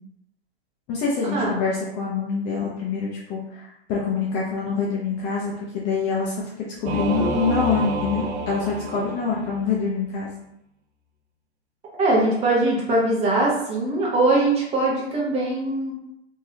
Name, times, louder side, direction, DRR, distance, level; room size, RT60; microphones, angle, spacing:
voice 1, 0.9-10.3, left 5 dB, 25° left, -4 dB, 0.5 m, -25 dB
Singing / Musical instrument, 6.8-9.7, right 2 dB, 80° right, 0.6 m, -29 dB
voice 2, 12.0-15.9, right 2 dB, 20° right, -4 dB, 0.8 m, -21 dB
3.1 x 2.7 x 2.7 m, 0.78 s
hypercardioid pair, 135°, 33 cm